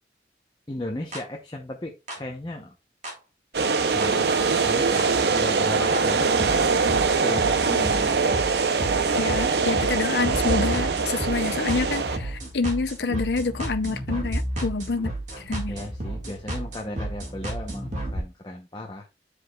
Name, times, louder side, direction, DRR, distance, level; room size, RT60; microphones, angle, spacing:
voice 1, 0.7-2.7 3.9-4.3 4.6-6.7 7.2-8.3 15.7-19.1, left 1 dB, 25° left, 0.8 m, -35 dB
sound 1, 1.1-1.2 2.1-2.2 3.0-3.1 4.0-4.1 5.0-5.1 5.9-6.0 6.4-18.2, right 1 dB, 40° right, 2.0 m, -32 dB
sound 2, 3.5-12.2, right 4 dB, 65° right, 0.7 m, -23 dB
voice 2, 9.1-15.7, left 4 dB, 70° left, 0.6 m, -27 dB
9.7 x 4.9 x 2.4 m
head